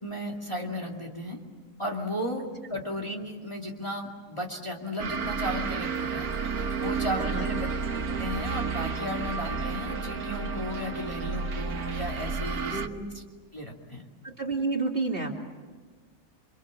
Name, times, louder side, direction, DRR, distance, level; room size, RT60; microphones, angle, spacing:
voice 1, 0.0-1.4 1.8-6.3 6.6-7.7 8.2-12.8 13.1-13.2 13.5-14.0, equal, 20° left, -1 dB, 2.5 m, -35 dB
sound 1, 5.0-12.9, right 5 dB, 65° right, 1.6 m, -31 dB
voice 2, 7.2-7.5 12.7-13.1 14.2-15.4, right 3 dB, 35° right, 1 dB, 2.7 m, -30 dB
28.5 x 25.5 x 7.5 m, 1.4 s
omnidirectional pair, 1.7 m